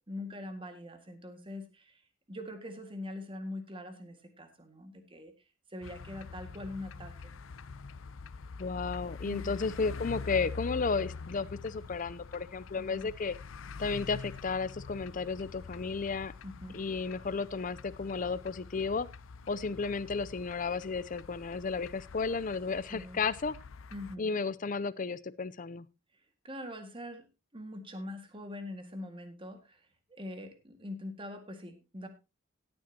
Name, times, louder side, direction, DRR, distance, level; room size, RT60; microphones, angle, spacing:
voice 1, 0.1-2.0 2.3-5.3 5.7-7.1 12.7-13.1 16.4-16.8 22.9-23.2 23.9-24.3 26.4-27.3 27.5-32.1, left 1 dB, 25° right, 7 dB, 1.9 m, -43 dB
sound 1, 5.8-24.1, left 4 dB, 90° left, 0.6 m, -45 dB
voice 2, 8.6-13.3 13.8-16.3 16.7-19.1 19.5-23.5 24.2-25.9, left 4 dB, 40° left, 17 dB, 0.6 m, -33 dB
17.5 x 8.7 x 2.8 m, 0.26 s
head